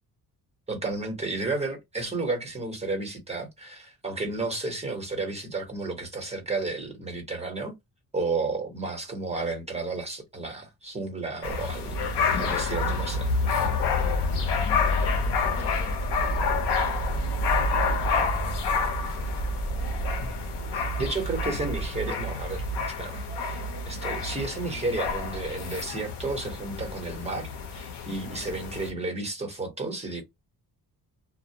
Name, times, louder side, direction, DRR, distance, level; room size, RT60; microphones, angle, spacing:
voice 1, 0.7-7.7 8.1-13.3 20.7-22.6 23.0-23.6 23.9-30.2, right 3 dB, 15° right, 1.0 m, -32 dB
sound 1, 11.4-28.9, left 3 dB, 90° left, 0.7 m, -28 dB
voice 2, 14.3-14.8 15.3-17.4 17.8-19.8, right 6 dB, 40° right, 0.7 m, -51 dB
sound 2, 15.4-21.9, left 1 dB, 5° left, 0.5 m, -36 dB
2.1 x 2.1 x 2.7 m
cardioid pair, 105°, 39 cm